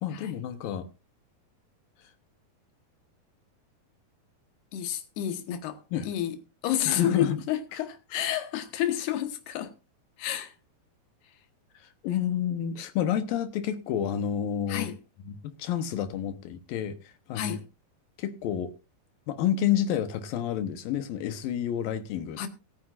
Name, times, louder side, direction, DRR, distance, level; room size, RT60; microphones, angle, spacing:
voice 1, 0.0-0.9 5.9-6.1 6.9-7.4 8.2-8.3 11.7-14.9 15.3-17.5 18.2-18.7 19.3-22.4, left 9 dB, 70° left, 2.6 m, -29 dB
voice 2, 4.7-6.4 6.6-9.7 10.2-10.5 14.7-15.0 17.4-17.6 22.4-22.5, left 11 dB, 85° left, 3.4 m, -30 dB
21.5 x 9.4 x 2.5 m
omnidirectional pair, 4.5 m